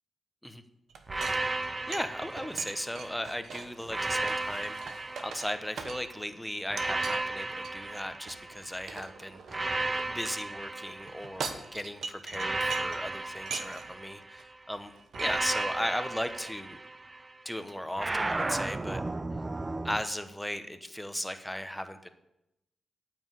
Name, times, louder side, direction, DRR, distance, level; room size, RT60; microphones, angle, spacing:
sound 1, 0.9-6.3 6.8-7.2 7.6-10.4 11.0-13.1 13.4-14.0 14.4-14.5 14.7-15.3, right 5 dB, 75° right, 1.0 m, -42 dB
sound 2, 1.1-3.2 3.9-6.0 6.7-8.9 9.5-11.7 12.3-14.5 15.2-17.3 18.0-20.0, right 2 dB, 30° right, 0.5 m, -34 dB
voice 1, 1.9-9.8 10.0-14.9 15.2-16.8 17.4-19.0 19.8-22.1, equal, 5° left, 8 dB, 1.1 m, -37 dB
8.9 x 6.3 x 8.3 m, 0.87 s
cardioid pair, 55°, 0 cm